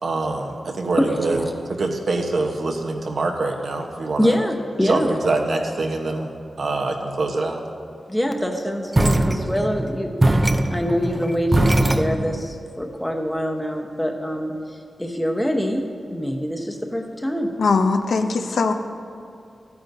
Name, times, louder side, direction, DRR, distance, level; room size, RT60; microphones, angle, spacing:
voice 1, 0.0-4.4 4.8-7.6, right 2 dB, 65° right, 2 dB, 1.0 m, -25 dB
voice 2, 4.2-5.1 8.1-14.6 15.0-17.5, equal, 5° left, 3 dB, 0.9 m, -24 dB
sound 1, 8.9-12.4, right 1 dB, 25° right, 0.4 m, -21 dB
voice 3, 17.6-18.7, left 4 dB, 75° left, 6 dB, 0.6 m, -20 dB
13.0 x 9.4 x 2.7 m, 2.5 s
wide cardioid pair, 95°, 0 cm